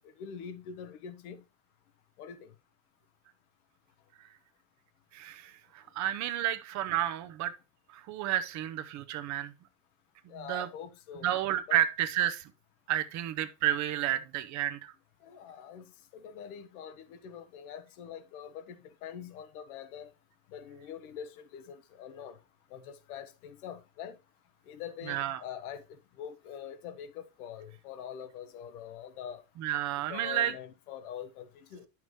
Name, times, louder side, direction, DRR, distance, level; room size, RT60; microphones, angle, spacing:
voice 1, 0.2-1.4 2.2-2.5 10.3-11.3 11.7-11.8 15.2-15.8 16.1-20.1 20.5-22.4 22.7-24.2 24.7-29.4 30.1-31.9, left 8 dB, 85° left, 1.0 m, -44 dB
voice 2, 5.1-7.5 7.9-9.5 10.3-10.7 11.2-12.5 12.9-14.9 25.1-25.4 29.6-30.5, right 12 dB, 40° right, 0.7 m, -31 dB
8.9 x 6.0 x 3.1 m
supercardioid pair, 130°, 43 cm